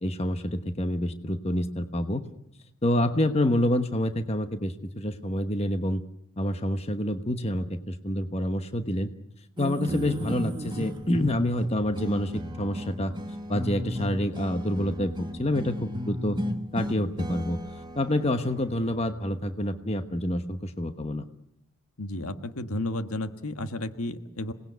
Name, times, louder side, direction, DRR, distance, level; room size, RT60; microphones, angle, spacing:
voice 1, 0.0-2.3 2.8-6.0 6.4-9.1 9.6-13.2 13.5-16.4 16.7-17.6 17.9-21.3, left 1 dB, 30° left, 8 dB, 1.1 m, -27 dB
sound 1, 9.6-20.2, equal, 20° right, 1.5 m, -35 dB
voice 2, 22.0-24.5, left 1 dB, 75° left, 8 dB, 1.6 m, -32 dB
27.0 x 19.0 x 8.2 m, 0.80 s
head